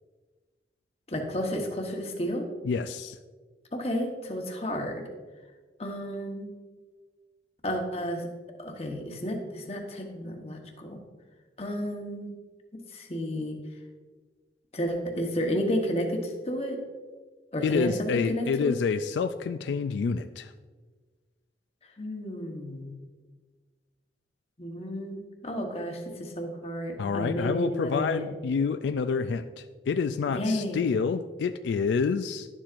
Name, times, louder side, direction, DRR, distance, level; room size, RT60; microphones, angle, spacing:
voice 1, 1.1-2.5 3.7-5.0 5.8-6.5 7.6-8.3 8.6-11.0 11.6-12.3 12.9-13.6 14.7-16.8 17.5-18.8 22.0-23.0 24.6-28.3 30.3-30.8, equal, 35° left, 2 dB, 1.0 m, -31 dB
voice 2, 2.6-3.2 17.6-20.5 27.0-32.5, left 5 dB, 85° left, 10 dB, 0.3 m, -28 dB
11.5 x 7.3 x 2.5 m, 1.4 s
head